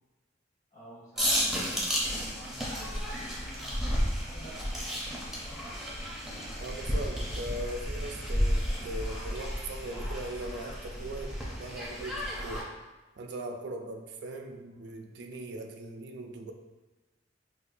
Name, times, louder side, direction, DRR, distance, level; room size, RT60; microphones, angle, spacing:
voice 1, 0.7-5.0 5.3-5.6, right 1 dB, 40° left, -7 dB, 1.3 m, -50 dB
sound 1, 1.2-12.6, equal, ahead, 0.5 m, -32 dB
voice 2, 6.6-12.7 13.2-16.5, right 2 dB, 60° right, 4 dB, 0.3 m, -40 dB
4.6 x 2.2 x 2.5 m, 1.2 s
head